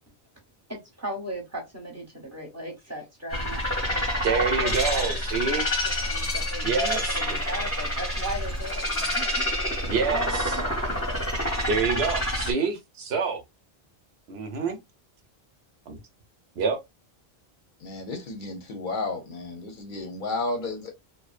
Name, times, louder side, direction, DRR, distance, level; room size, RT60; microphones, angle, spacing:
voice 1, 0.7-5.7 6.1-9.4 10.0-10.9, right 1 dB, 15° right, 0.8 m, -37 dB
sound 1, 3.3-12.5, left 1 dB, 15° left, 0.7 m, -28 dB
voice 2, 4.2-5.7 6.6-7.2 9.9-10.6 11.7-13.4 14.3-14.8 15.9-16.0 16.6-16.8, right 5 dB, 75° right, 0.9 m, -27 dB
voice 3, 17.8-20.9, left 3 dB, 55° left, 0.7 m, -32 dB
2.5 x 2.1 x 2.3 m
omnidirectional pair, 1.1 m